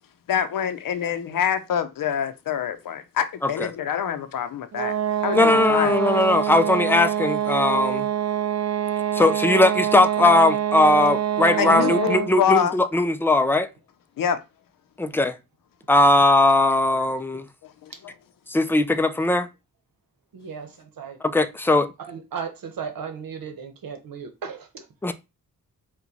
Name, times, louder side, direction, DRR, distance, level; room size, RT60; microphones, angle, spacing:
voice 1, 0.3-4.9 5.2-6.0 11.6-12.8 14.2-14.4 17.6-18.1, left 8 dB, 70° left, 0.6 m, -26 dB
sound 1, 4.7-12.4, right 11 dB, 50° right, 0.5 m, -25 dB
voice 2, 5.3-8.1 9.1-13.7 15.0-15.4 15.9-17.5 18.5-19.5 21.2-21.9 25.0-25.1, left 2 dB, 5° left, 0.4 m, -19 dB
voice 3, 20.3-21.2 22.0-24.9, right 6 dB, 80° right, 1.0 m, -35 dB
4.4 x 2.3 x 4.0 m
cardioid pair, 95°, 34 cm